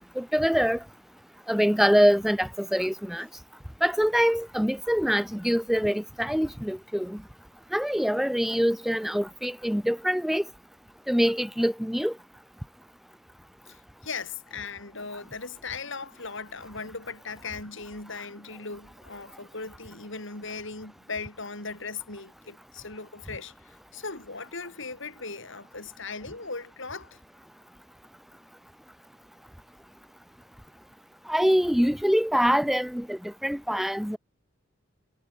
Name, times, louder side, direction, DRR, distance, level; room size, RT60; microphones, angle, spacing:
voice 1, 0.2-0.8 1.5-3.3 3.8-7.2 7.7-10.4 11.1-12.1 31.3-34.2, equal, ahead, 0.7 m, -24 dB
voice 2, 13.6-27.2, left 4 dB, 65° left, 4.8 m, -38 dB
head